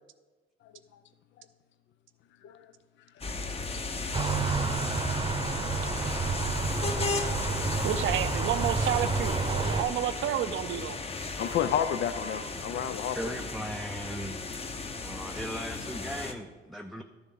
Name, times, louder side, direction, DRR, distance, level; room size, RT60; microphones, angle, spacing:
sound 1, 3.2-16.3, left 3 dB, 30° left, 0.9 m, -35 dB
sound 2, 4.1-9.8, right 4 dB, 25° right, 0.8 m, -30 dB
voice 1, 7.8-11.0, right 10 dB, 80° right, 12 dB, 0.6 m, -30 dB
voice 2, 11.4-13.3, left 9 dB, 70° left, 11 dB, 0.5 m, -32 dB
voice 3, 13.1-14.8 15.0-17.0, equal, ahead, 4 dB, 0.5 m, -38 dB
12.0 x 7.1 x 3.8 m, 1.3 s
cardioid pair, 90°, 20 cm